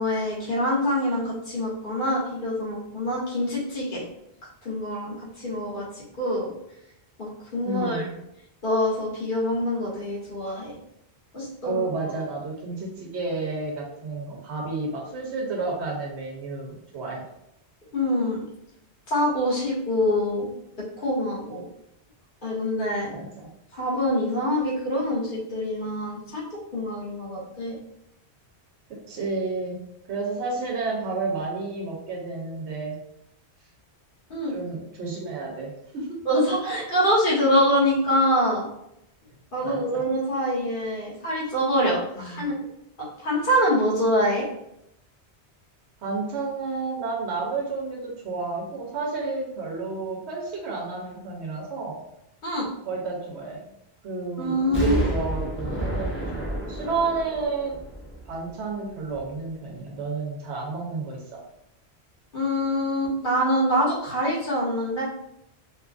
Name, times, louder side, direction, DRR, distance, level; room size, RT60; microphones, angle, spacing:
voice 1, 0.0-4.0 4.6-6.5 7.2-8.1 8.6-10.8 11.3-11.8 17.9-18.4 19.1-20.5 20.8-21.7 22.4-23.1 23.7-26.4 26.7-27.8 34.3-34.6 36.2-38.6 39.5-42.7 43.0-44.5 52.4-52.7 54.4-55.0 62.3-65.0, equal, 50° left, -6 dB, 1.2 m, -25 dB
voice 2, 7.6-8.1 11.6-17.2 23.0-23.5 28.9-29.8 30.1-33.0 34.5-36.2 39.6-40.0 42.1-42.5 46.0-52.0 52.8-53.6 54.0-57.8 58.3-61.4, right 3 dB, 85° right, -1 dB, 1.0 m, -31 dB
Explosion, 54.7-58.7 59.1-59.2, right 1 dB, 15° left, 0.6 m, -30 dB
2.8 x 2.4 x 2.4 m, 0.81 s
omnidirectional pair, 1.1 m